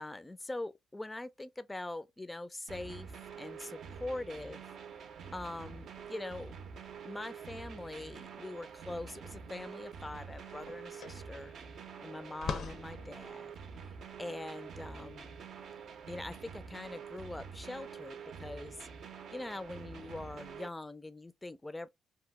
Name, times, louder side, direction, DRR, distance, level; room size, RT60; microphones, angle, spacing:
voice 1, 0.0-4.6 4.9-5.1 5.3-6.5 7.0-11.6 12.0-15.3 16.1-18.9 19.3-21.9, left 2 dB, 15° left, 0.4 m, -43 dB
sound 1, 2.7-20.7, right 6 dB, 65° right, 0.6 m, -47 dB
sound 2, 9.5-9.6 9.9-16.4, left 6 dB, 65° left, 0.6 m, -45 dB
2.9 x 2.0 x 3.4 m
cardioid pair, 90°, 0 cm